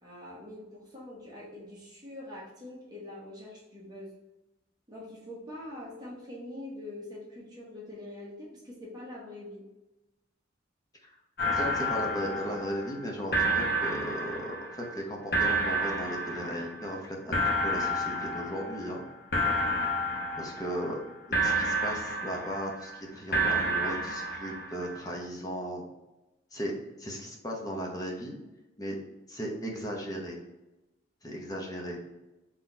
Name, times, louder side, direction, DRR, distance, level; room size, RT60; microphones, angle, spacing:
voice 1, 0.0-4.1 4.9-9.6, left 1 dB, 20° right, -6 dB, 1.1 m, -44 dB
sound 1, 11.4-13.0 13.3-15.0 15.3-17.0 17.3-19.0 19.3-21.0 21.3-23.0 23.3-25.0, right 1 dB, 60° left, 0.9 m, -30 dB
voice 2, 11.5-19.0 20.4-21.0 21.3-25.8 26.5-28.4 28.8-29.0 29.3-30.4 31.2-32.0, equal, 20° left, -1 dB, 0.8 m, -36 dB
4.0 x 3.0 x 3.9 m, 0.99 s
head